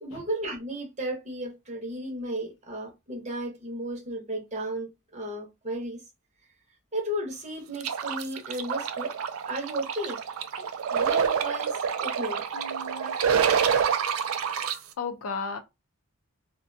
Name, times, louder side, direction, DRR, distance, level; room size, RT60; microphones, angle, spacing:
voice 1, 0.0-6.0 6.9-9.1 9.5-10.2 10.6-12.4 12.9-13.5 14.7-14.8, right 1 dB, 30° right, 0.8 m, -34 dB
sound 1, 7.8-14.8, right 7 dB, 75° right, 0.4 m, -27 dB
voice 2, 12.5-13.2 15.0-15.6, left 4 dB, 80° left, 0.4 m, -35 dB
2.4 x 2.2 x 2.5 m
head